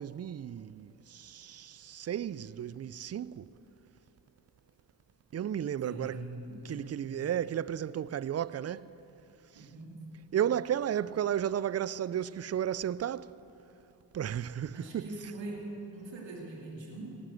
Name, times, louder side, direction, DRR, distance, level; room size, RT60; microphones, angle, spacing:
voice 1, 0.0-3.5 5.3-6.2 6.6-8.9 9.6-9.7 10.3-13.3 14.1-15.1, right 10 dB, 35° right, 0.4 m, -33 dB
voice 2, 5.8-6.9 9.5-10.0 14.7-17.2, right 2 dB, 85° right, 2.5 m, -42 dB
18.5 x 7.8 x 7.6 m
supercardioid pair, 45°, 43 cm